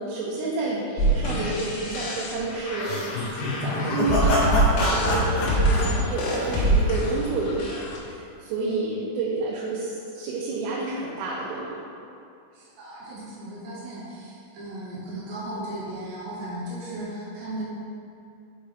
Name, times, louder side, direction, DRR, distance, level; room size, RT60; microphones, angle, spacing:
voice 1, 0.0-11.8, right 3 dB, 90° right, -6 dB, 3.4 m, -30 dB
sound 1, 1.0-8.0, right 1 dB, 90° left, 2.0 m, -25 dB
sound 2, 2.8-7.0, left 1 dB, 70° left, 2.2 m, -26 dB
voice 2, 5.5-6.0 12.5-17.6, right 1 dB, 70° right, -7 dB, 3.0 m, -36 dB
6.3 x 5.7 x 3.5 m, 2.5 s
omnidirectional pair, 5.7 m